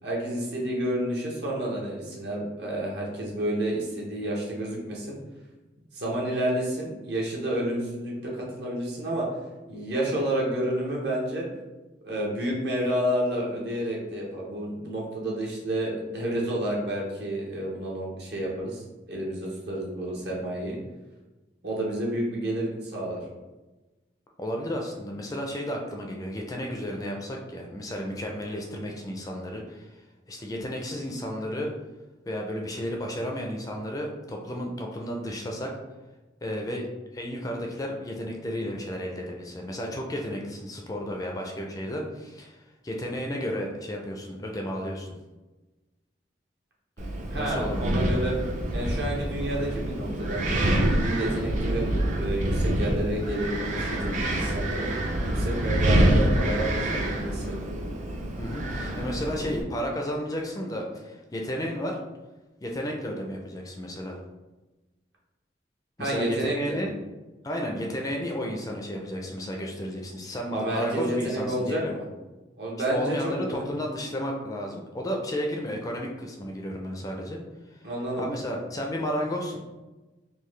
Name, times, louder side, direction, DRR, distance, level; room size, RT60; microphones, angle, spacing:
voice 1, 0.0-5.2 5.9-9.3 9.7-11.5 12.0-20.8 21.6-23.2 47.3-48.3 48.7-57.6 66.0-66.8 70.5-72.0 72.6-73.5 77.8-78.2, right 1 dB, 65° right, -3 dB, 1.0 m, -30 dB
voice 2, 24.4-29.9 30.3-31.7 32.3-35.7 36.4-36.9 37.1-42.6 42.8-45.2 47.3-47.9 58.4-62.0 62.6-64.2 66.0-66.9 67.4-71.9 72.9-77.4 78.2-79.6, equal, 20° left, 0 dB, 0.4 m, -32 dB
Wind, 47.0-59.6, right 1 dB, 45° right, 0.5 m, -26 dB
3.8 x 2.3 x 3.1 m, 1.1 s
head